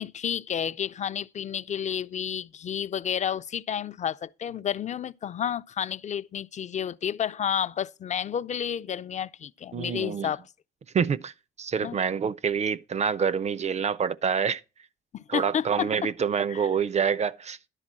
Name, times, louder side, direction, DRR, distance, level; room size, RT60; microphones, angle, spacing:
voice 1, 0.0-10.4 11.8-12.0 15.1-16.1 16.5-16.7, left 8 dB, 35° left, 0.4 m, -31 dB
voice 2, 9.7-10.3 10.9-14.6 15.3-17.6, right 6 dB, 35° right, 0.4 m, -27 dB
11.0 x 3.7 x 7.3 m
cardioid pair, 90°, 20 cm